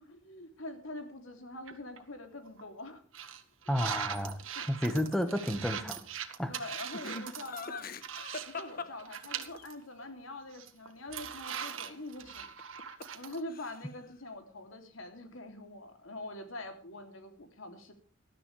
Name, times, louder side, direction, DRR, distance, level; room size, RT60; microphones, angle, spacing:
voice 1, 0.0-3.0 4.5-5.1 6.4-7.9 8.4-12.5 13.1-17.9, left 2 dB, 90° left, 6 dB, 3.1 m, -44 dB
sound 1, 1.7-2.0 2.5-2.6 3.1-8.7 9.0-9.7 10.1-10.2 10.5-13.4, right 8 dB, 90° right, 1.7 m, -41 dB
voice 2, 3.7-4.4 4.7-6.0 6.4-6.6, equal, ahead, 9 dB, 1.4 m, -31 dB
Laughter, 6.9-9.6 12.4-13.2 13.5-14.0, left 4 dB, 45° left, 1.2 m, -42 dB
20.0 x 12.5 x 3.4 m, 0.39 s
head